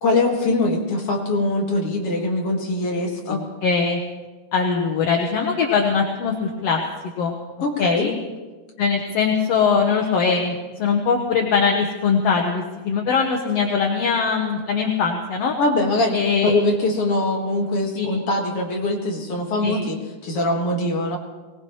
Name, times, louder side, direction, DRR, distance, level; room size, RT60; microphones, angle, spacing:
voice 1, 0.0-3.4 7.6-8.1 15.6-21.2, left 2 dB, 50° left, 0 dB, 2.2 m, -22 dB
voice 2, 3.3-4.0 4.5-6.8 7.2-7.3 7.8-8.1 8.8-15.5 16.1-16.5 17.9-18.1 19.6-19.8, left 5 dB, 65° left, 1 dB, 1.7 m, -21 dB
22.5 x 19.0 x 3.1 m, 1.3 s
omnidirectional pair, 4.1 m